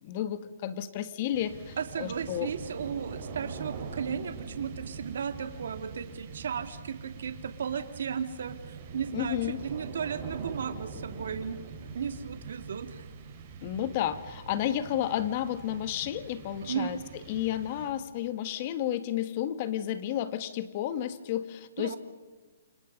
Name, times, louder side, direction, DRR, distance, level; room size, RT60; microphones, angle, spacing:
voice 1, 0.0-2.5 9.1-9.6 13.6-17.0 17.3-22.0, left 11 dB, 35° left, 11 dB, 1.7 m, -32 dB
sound 1, 1.3-18.3, right 5 dB, 35° right, 5.4 m, -43 dB
voice 2, 1.8-11.6 11.9-13.1 16.7-16.9 21.8-22.0, right 7 dB, 70° right, 7 dB, 2.5 m, -35 dB
29.5 x 26.5 x 5.5 m, 1.3 s
hypercardioid pair, 160°, 0 cm